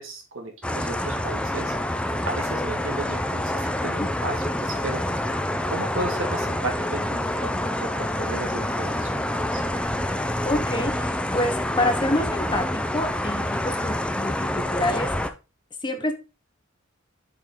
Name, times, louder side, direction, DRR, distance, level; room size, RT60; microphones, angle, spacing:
voice 1, 0.0-1.7 2.3-5.0 5.7-9.1 9.3-9.6, right 2 dB, 70° right, 3 dB, 2.3 m, -34 dB
sound 1, 0.6-15.3, left 1 dB, 5° left, 0.6 m, -27 dB
voice 2, 10.4-15.1 15.8-16.1, left 1 dB, 25° left, 6 dB, 1.1 m, -27 dB
7.4 x 5.5 x 3.8 m, 0.29 s
head